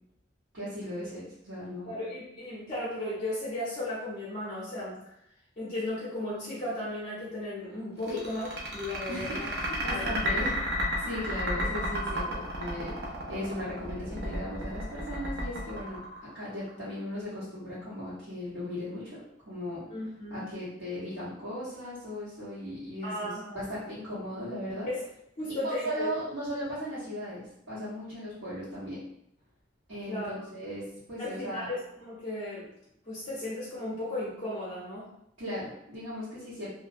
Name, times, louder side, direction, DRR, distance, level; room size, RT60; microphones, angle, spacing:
voice 1, 0.5-1.9 8.1-8.2 9.1-10.6 11.0-12.9 13.3-19.8 20.3-24.9 25.6-29.0 29.9-30.8 31.1-31.7 35.4-36.7, left 1 dB, 85° right, -13 dB, 1.1 m, -37 dB
voice 2, 1.8-5.0 5.6-9.5 9.9-10.1 19.9-20.4 23.0-23.7 24.9-25.0 25.4-26.1 30.1-30.4 31.2-32.7 33.1-35.1, left 1 dB, 35° left, -9 dB, 0.6 m, -35 dB
sound 1, 8.0-16.7, equal, 60° right, 0.6 m, -32 dB
2.4 x 2.0 x 2.5 m, 0.77 s
head